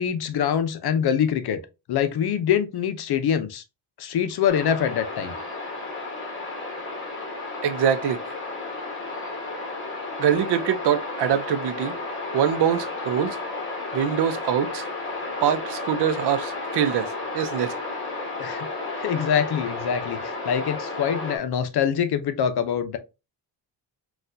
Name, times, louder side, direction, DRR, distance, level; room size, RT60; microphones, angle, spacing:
voice 1, 0.0-1.6 1.9-3.6 4.0-5.3 18.4-18.7 19.0-23.0, left 8 dB, 60° left, 0.6 m, -24 dB
sound 1, 4.5-21.4, left 3 dB, 25° left, 1.2 m, -33 dB
voice 2, 7.6-8.2 10.2-11.9 12.3-13.4 13.9-14.9 15.4-17.8, right 9 dB, 65° right, 0.6 m, -24 dB
4.1 x 2.4 x 2.5 m
cardioid pair, 125°, 45 cm